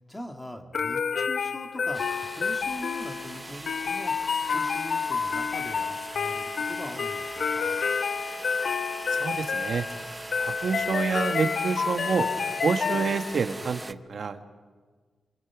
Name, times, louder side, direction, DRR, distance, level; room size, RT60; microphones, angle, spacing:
voice 1, 0.1-7.8, left 1 dB, 10° left, 3 dB, 2.0 m, -41 dB
sound 1, 0.7-13.5, left 6 dB, 55° left, 0.7 m, -29 dB
sound 2, 1.9-13.9, right 2 dB, 15° right, 0.6 m, -40 dB
voice 2, 9.1-9.9 10.4-12.3 12.6-14.5, right 5 dB, 55° right, 7 dB, 1.4 m, -28 dB
26.5 x 23.0 x 6.1 m, 1.5 s
wide cardioid pair, 170°, 0 cm